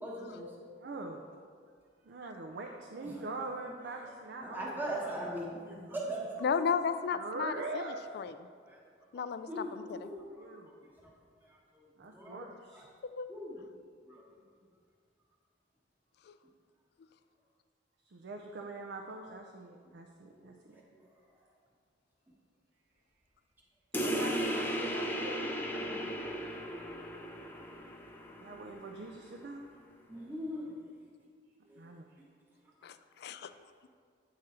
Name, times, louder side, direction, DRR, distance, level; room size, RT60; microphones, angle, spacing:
voice 1, 0.0-0.5 2.9-3.2 3.8-4.1 4.4-6.4 8.6-8.8 9.1-11.1 11.5-12.4 12.7-12.8 13.3-13.6 14.1-14.2 20.4-21.1 25.7-26.0 26.8-27.2 27.6-27.7 29.2-29.3 30.1-30.9 31.7-31.8, right 1 dB, 10° right, -4 dB, 1.1 m, -42 dB
voice 2, 0.8-1.2 2.0-4.8 7.1-8.2 10.3-10.7 12.0-12.9 18.1-20.5 24.0-25.6 28.3-29.6 31.8-32.1, right 3 dB, 60° right, 2 dB, 0.4 m, -43 dB
voice 3, 6.4-8.3 9.1-10.1 13.0-13.3 16.3-16.4 32.8-33.5, left 6 dB, 60° left, 11 dB, 0.3 m, -34 dB
sound 1, 23.9-29.0, equal, 10° left, 0.5 m, -36 dB
8.9 x 3.8 x 4.2 m, 2.1 s
head